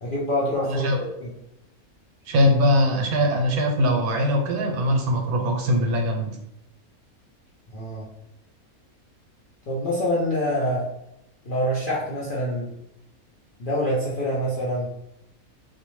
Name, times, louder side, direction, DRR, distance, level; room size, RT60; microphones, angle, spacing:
voice 1, 0.0-1.3 7.7-8.1 9.7-10.9 11.4-12.7 13.6-14.9, equal, 65° left, -7 dB, 0.5 m, -26 dB
voice 2, 0.6-1.0 2.3-6.3, equal, 85° right, 2 dB, 1.1 m, -21 dB
2.5 x 2.1 x 3.0 m, 0.83 s
omnidirectional pair, 1.5 m